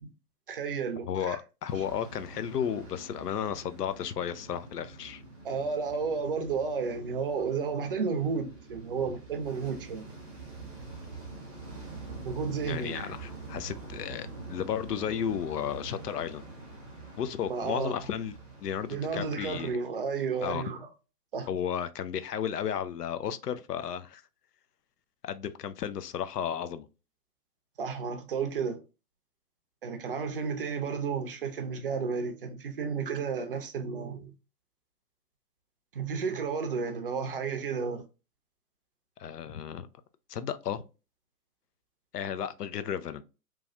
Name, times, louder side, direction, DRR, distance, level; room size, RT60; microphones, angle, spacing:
voice 1, 0.5-1.4 5.4-10.1 12.2-13.1 17.5-17.9 18.9-20.9 21.3-21.5 27.8-28.8 29.8-34.3 35.9-38.0, right 5 dB, 35° right, 0.5 m, -32 dB
voice 2, 1.1-5.2 12.7-16.5 17.2-18.3 18.6-19.7 20.4-20.6 21.5-24.2 25.2-26.9 39.2-39.9 40.3-40.8 42.1-43.2, left 8 dB, 80° left, 0.5 m, -33 dB
sound 1, 1.7-19.8, right 3 dB, 5° left, 0.7 m, -46 dB
3.1 x 2.2 x 2.4 m
hypercardioid pair, 135°, 47 cm